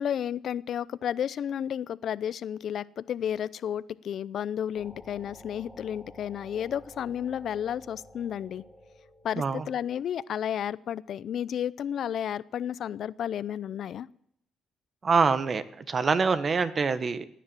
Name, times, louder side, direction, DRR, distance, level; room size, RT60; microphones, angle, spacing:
voice 1, 0.0-8.6 9.2-14.1, left 9 dB, 65° left, 18 dB, 0.6 m, -32 dB
sound 1, 4.7-10.2, equal, ahead, 2.7 m, -52 dB
voice 2, 15.0-17.3, right 5 dB, 40° right, 12 dB, 1.2 m, -25 dB
17.0 x 10.0 x 7.7 m, 0.71 s
cardioid pair, 90°, 0 cm